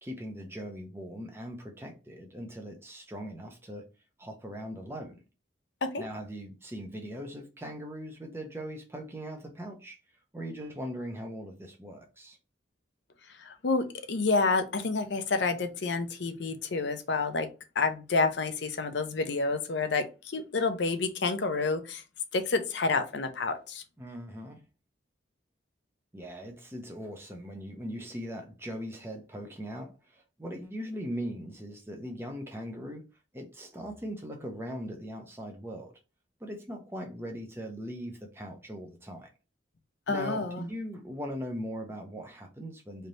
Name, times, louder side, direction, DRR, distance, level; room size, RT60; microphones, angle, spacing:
voice 1, 0.0-3.8 4.2-5.2 6.0-10.0 10.3-12.4 24.0-24.6 26.1-33.0 33.3-35.9 36.4-39.3 40.1-43.1, equal, 10° right, 0.6 m, -40 dB
voice 2, 13.4-17.5 17.8-22.0 22.3-23.8 40.1-40.6, left 3 dB, 70° left, 0.6 m, -29 dB
3.3 x 2.8 x 4.0 m
head